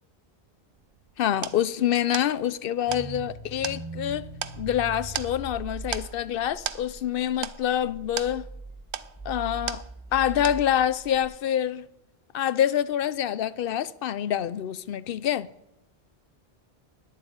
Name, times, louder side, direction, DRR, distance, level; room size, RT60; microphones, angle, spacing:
sound 1, 0.7-10.2 10.4-11.0, right 9 dB, 60° right, 0.8 m, -38 dB
voice 1, 1.2-4.3 4.6-8.5 9.2-9.8 10.1-11.9 12.3-15.5, left 10 dB, 65° left, 0.7 m, -26 dB
sound 2, 2.9-11.2, right 2 dB, ahead, 1.2 m, -41 dB
9.8 x 7.6 x 9.5 m
omnidirectional pair, 1.0 m